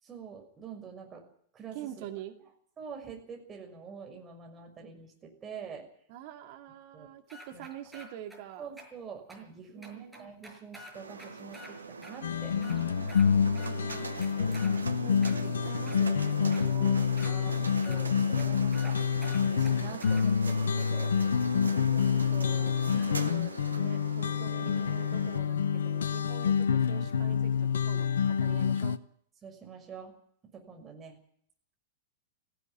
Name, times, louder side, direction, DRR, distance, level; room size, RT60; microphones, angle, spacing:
voice 1, 0.0-1.2 1.5-2.1 2.8-5.9 6.9-7.1 7.5-7.7 8.6-12.5 13.9-14.9 17.2-17.6 17.8-19.0 19.4-21.1 21.7-22.2 22.9-23.1 24.6-24.7 29.4-30.1 30.5-31.2, right 6 dB, 20° right, 2 dB, 6.2 m, -46 dB
voice 2, 1.7-2.3 6.1-8.7 9.7-10.3 12.6-14.5 15.0-17.0 22.1-22.8 23.1-29.0, right 11 dB, 45° right, 6 dB, 2.3 m, -45 dB
sound 1, 7.3-8.4 8.8-8.9 9.3-9.4 9.8-11.7 12.0-12.1 12.5-13.3 13.5-14.7 15.2-16.0 16.5-16.6 17.2-17.3 17.8-18.0 18.4-18.5 18.7-18.9 19.2-20.2, equal, 5° right, 6.1 m, -48 dB
sound 2, 10.9-25.4, right 4 dB, 75° right, 1.4 m, -42 dB
sound 3, 12.2-29.0, left 7 dB, 65° left, 0.9 m, -28 dB
18.5 x 16.0 x 9.8 m, 0.63 s
figure-of-eight pair, 95°, 0 cm